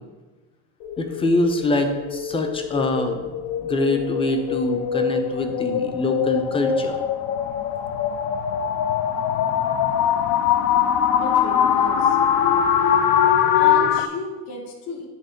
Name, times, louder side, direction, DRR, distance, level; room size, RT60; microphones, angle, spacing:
sound 1, 0.8-14.1, left 8 dB, 50° left, 0.6 m, -22 dB
voice 1, 1.0-3.3 3.6-7.0, left 1 dB, 15° left, 6 dB, 0.6 m, -24 dB
voice 2, 11.2-12.2 13.5-15.1, left 3 dB, 70° left, 1 dB, 1.7 m, -34 dB
9.2 x 3.7 x 5.1 m, 1.2 s
cardioid pair, 145°, 44 cm